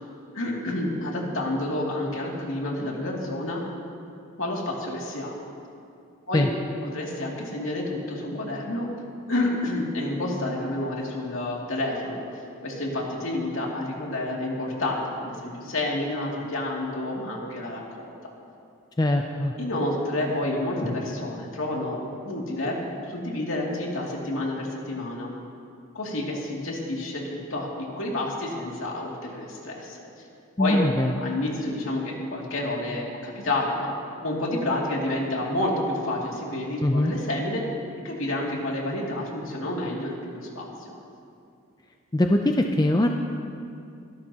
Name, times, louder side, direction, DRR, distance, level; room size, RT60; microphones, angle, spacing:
voice 1, 0.3-3.6 4.4-5.3 6.3-6.5 6.8-8.9 9.3-12.2 12.6-18.3 19.6-22.0 22.2-22.8 23.1-25.3 25.9-27.2 27.5-27.7 28.0-30.0 30.6-30.8 31.2-33.9 34.2-37.6 38.0-41.0, left 1 dB, 70° left, -2 dB, 2.5 m, -29 dB
voice 2, 19.0-19.5 30.6-31.1 36.8-37.1 42.1-43.1, left 1 dB, 20° left, 3 dB, 0.4 m, -22 dB
26.0 x 12.0 x 2.9 m, 2.5 s
head